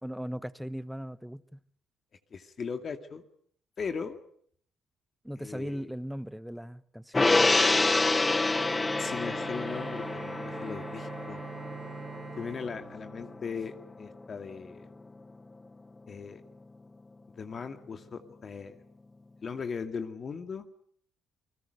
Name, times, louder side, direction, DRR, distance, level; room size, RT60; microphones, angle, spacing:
voice 1, 0.0-1.6 5.2-7.5, equal, ahead, 15 dB, 1.1 m, -38 dB
voice 2, 2.3-3.2 3.8-4.2 5.4-5.8 9.0-11.4 12.4-14.9 16.1-16.4 17.4-18.8 19.4-20.7, left 5 dB, 45° left, 8 dB, 2.3 m, -38 dB
Gong, 7.1-13.8 14.1-14.2, left 3 dB, 20° left, 0.9 m, -28 dB
Bowed string instrument, 7.9-13.9, right 7 dB, 50° right, 3.9 m, -45 dB
29.0 x 20.0 x 6.7 m, 0.63 s
cardioid pair, 90°, 0 cm